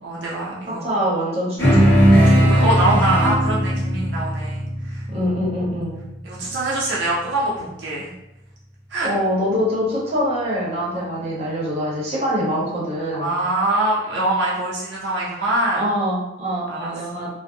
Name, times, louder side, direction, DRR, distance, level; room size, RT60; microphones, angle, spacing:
voice 1, 0.0-1.0 2.2-5.3 6.2-8.1 8.9-9.1 10.9-11.1 13.1-15.8 16.7-17.3, right 1 dB, 70° right, -6 dB, 0.5 m, -24 dB
voice 2, 0.7-2.0 2.8-3.1 5.1-6.0 9.0-13.3 15.7-17.3, equal, 35° right, -6 dB, 0.8 m, -24 dB
sound 1, 1.6-6.3, equal, 15° left, 1.4 m, -18 dB
2.5 x 2.0 x 2.6 m, 0.91 s
head